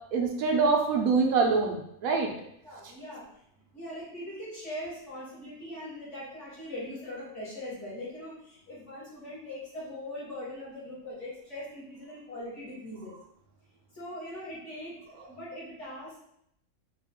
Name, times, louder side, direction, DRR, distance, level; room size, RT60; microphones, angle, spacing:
voice 1, 0.1-2.3, right 4 dB, 75° right, 2 dB, 1.1 m, -25 dB
voice 2, 2.6-3.2 3.7-13.2 13.9-16.2, left 1 dB, 55° left, -9 dB, 2.1 m, -41 dB
4.3 x 2.4 x 3.5 m, 0.75 s
omnidirectional pair, 1.5 m